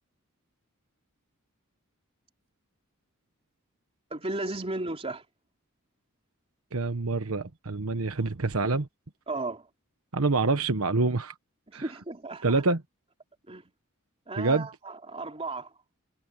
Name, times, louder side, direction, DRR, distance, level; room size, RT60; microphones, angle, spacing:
voice 1, 4.1-5.2 9.3-9.7 11.7-12.6 13.5-13.6 14.3-15.7, right 2 dB, 30° right, 3.1 m, -35 dB
voice 2, 6.7-8.9 10.1-11.3 11.7-11.9 12.4-12.8 14.4-14.7, right 3 dB, 75° right, 1.2 m, -26 dB
head